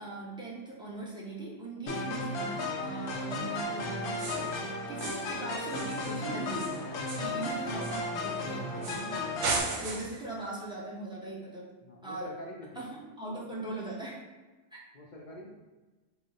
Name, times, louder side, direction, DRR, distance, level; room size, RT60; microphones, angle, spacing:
voice 1, 0.0-9.1 9.7-11.7 12.0-12.3 12.7-14.2 14.7-14.8, right 2 dB, 5° right, -6 dB, 0.7 m, -40 dB
sound 1, 1.9-9.6, left 2 dB, 85° left, 0.9 m, -34 dB
sound 2, 4.1-4.6 5.0-5.4 5.7-8.4 8.8-9.1 9.4-10.3, right 3 dB, 85° right, 1.0 m, -36 dB
voice 2, 11.8-12.8 14.9-15.5, left 1 dB, 50° left, -2 dB, 0.6 m, -47 dB
3.9 x 2.1 x 4.0 m, 1.2 s
omnidirectional pair, 1.2 m